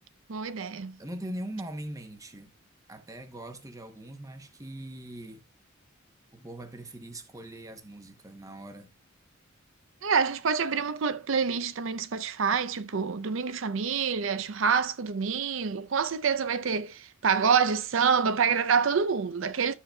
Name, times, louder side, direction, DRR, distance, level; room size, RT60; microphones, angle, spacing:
voice 1, 0.3-0.9 10.0-19.7, right 6 dB, 70° right, 0.6 m, -27 dB
voice 2, 1.0-2.5 2.9-5.4 6.3-8.9, right 1 dB, 15° right, 0.8 m, -41 dB
12.5 x 6.5 x 2.3 m
head